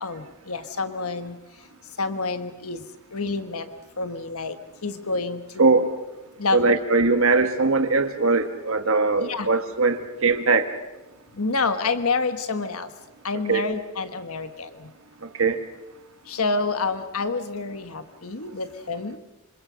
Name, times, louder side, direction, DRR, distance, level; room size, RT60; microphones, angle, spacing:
voice 1, 0.0-1.3 2.0-2.8 3.1-3.7 4.0-4.5 4.8-5.9 6.4-6.7 9.2-9.5 11.4-12.9 13.2-14.7 16.3-19.2, left 3 dB, 85° left, 9 dB, 1.4 m, -28 dB
voice 2, 5.6-5.9 6.5-10.7 13.5-13.6 15.4-15.6, right 3 dB, 70° right, 6 dB, 1.5 m, -20 dB
27.5 x 26.0 x 6.4 m, 1.1 s
head